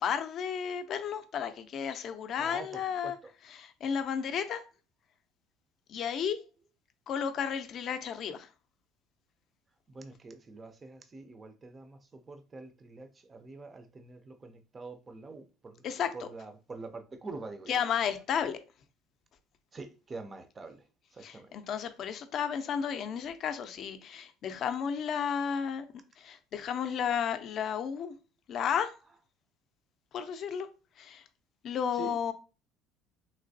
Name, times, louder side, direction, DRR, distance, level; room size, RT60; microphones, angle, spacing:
voice 1, 0.0-3.2 3.5-4.6 5.9-6.4 7.1-8.5 15.8-16.3 17.7-18.6 21.2-25.9 26.2-28.1 28.5-28.9 30.1-30.7 31.0-31.2 31.6-32.3, left 7 dB, 45° left, 0.4 m, -33 dB
voice 2, 2.4-3.3 9.9-15.8 16.1-17.8 19.7-20.8 21.1-21.6 31.9-32.2, right 3 dB, 20° right, 0.4 m, -45 dB
3.2 x 2.9 x 2.6 m
cardioid pair, 145°, 0 cm